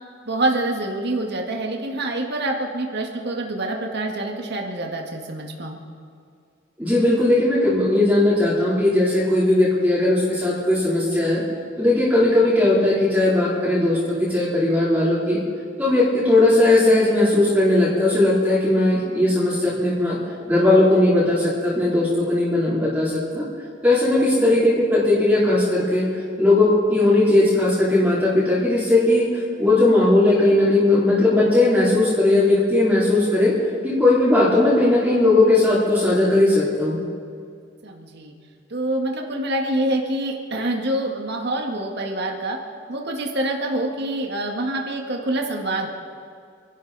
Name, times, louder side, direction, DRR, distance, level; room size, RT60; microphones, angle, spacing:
voice 1, 0.3-5.8 24.3-24.5 37.8-38.3 38.7-42.6 42.9-45.9, right 1 dB, 55° right, 1 dB, 1.8 m, -26 dB
voice 2, 6.8-11.4 11.8-15.4 15.8-20.2 20.5-23.4 23.8-26.1 26.4-33.5 33.8-37.0, left 2 dB, 10° right, -8 dB, 3.3 m, -18 dB
28.0 x 11.5 x 4.1 m, 2.2 s
head